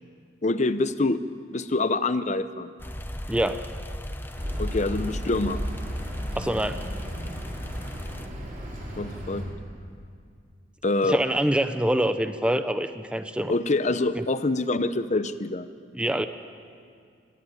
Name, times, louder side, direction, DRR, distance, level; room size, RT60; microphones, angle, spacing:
voice 1, 0.4-1.2 1.5-2.7 4.6-5.6 9.0-9.5 10.8-11.2 13.5-15.7, left 2 dB, 40° left, 12 dB, 0.8 m, -25 dB
sound 1, 2.8-8.3, equal, 10° left, 0.9 m, -35 dB
voice 2, 3.3-3.6 6.4-6.8 11.0-13.5 15.9-16.3, right 1 dB, 5° right, 9 dB, 0.6 m, -25 dB
Accelerating revving vroom, 4.4-9.4, equal, 45° right, 5.7 m, -35 dB
22.0 x 14.0 x 9.5 m, 2.3 s
head